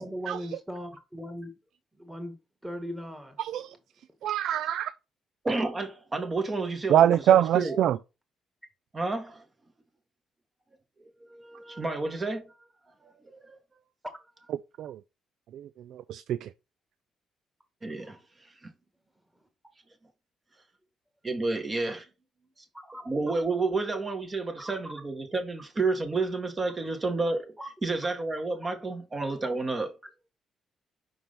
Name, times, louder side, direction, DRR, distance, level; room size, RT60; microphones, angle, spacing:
voice 1, 0.0-1.6 1.9-2.4 2.6-3.4 4.2-4.3 22.4-22.5 22.8-23.0 24.6-24.7 27.6-27.7, equal, 5° right, 2.0 m, -38 dB
voice 2, 3.4-3.7 4.2-4.9 6.9-8.0 14.8-15.0 15.5-16.5, right 11 dB, 75° right, 0.3 m, -24 dB
voice 3, 5.4-7.8 8.9-9.4 11.3-12.5 13.3-13.6 17.8-18.2 21.2-22.1 23.1-27.5 27.8-29.9, right 3 dB, 30° right, 1.9 m, -30 dB
5.4 x 4.5 x 5.8 m
cardioid pair, 90°, 0 cm